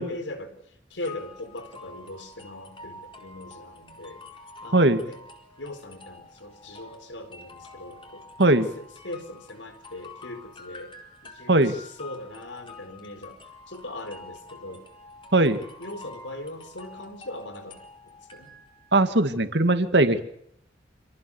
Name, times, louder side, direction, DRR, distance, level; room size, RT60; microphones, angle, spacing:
voice 1, 0.0-4.2 4.6-5.2 5.6-8.2 8.6-10.9 11.2-13.4 13.7-14.9 15.8-18.5, left 1 dB, 85° left, 9 dB, 4.3 m, -40 dB
sound 1, 1.0-19.0, left 3 dB, 30° left, 4.5 m, -47 dB
voice 2, 15.3-15.6 18.9-20.2, right 2 dB, 65° right, 9 dB, 2.2 m, -19 dB
27.5 x 18.5 x 7.2 m, 0.72 s
head